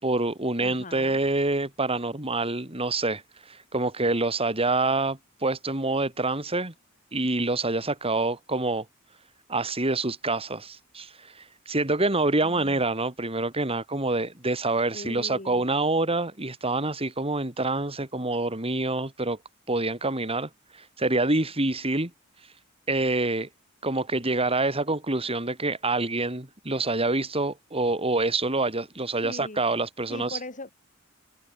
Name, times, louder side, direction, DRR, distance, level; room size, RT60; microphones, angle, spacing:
voice 1, 0.0-3.2 3.5-6.7 7.1-8.8 9.5-11.1 11.7-19.4 19.7-20.5 21.0-22.1 22.9-23.5 23.8-30.4, right 2 dB, 30° right, 4.0 m, -26 dB
voice 2, 0.6-1.2 14.9-15.7 29.2-29.6 30.1-30.7, left 2 dB, 40° left, 6.0 m, -40 dB
head